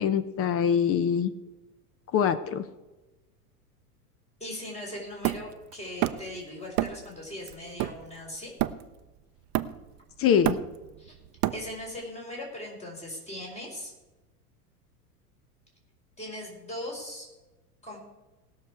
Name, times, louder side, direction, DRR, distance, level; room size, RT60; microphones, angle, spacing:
voice 1, 0.0-1.3 2.1-2.6 10.2-10.6, left 8 dB, 30° left, 12 dB, 0.8 m, -24 dB
voice 2, 4.4-8.5 11.0-11.2 11.5-13.9 16.2-17.3 17.8-18.0, left 1 dB, 15° left, -1 dB, 4.7 m, -39 dB
Hammer, 5.2-6.4 6.8-7.1 7.5-9.1 9.5-10.0 10.3-12.0, right 15 dB, 40° right, 0.6 m, -30 dB
19.5 x 6.7 x 4.7 m, 1.1 s
hypercardioid pair, 95°, 47 cm